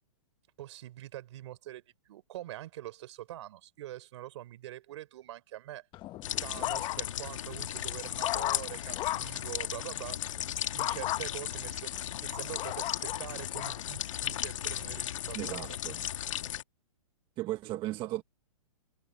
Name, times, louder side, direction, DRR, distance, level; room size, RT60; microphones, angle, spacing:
voice 1, 0.6-5.9 6.4-10.2 10.7-11.9 12.2-15.7, right 14 dB, 55° right, 4.1 m, -44 dB
sound 1, 5.9-7.3 7.7-9.4 10.8-11.2 11.9-13.8 14.4-14.8, left 15 dB, 25° left, 1.2 m, -36 dB
sound 2, 6.2-16.6, left 11 dB, 60° left, 1.7 m, -36 dB
voice 2, 15.3-16.0 17.4-18.2, right 16 dB, 25° right, 1.4 m, -36 dB
hypercardioid pair, 135°, 18 cm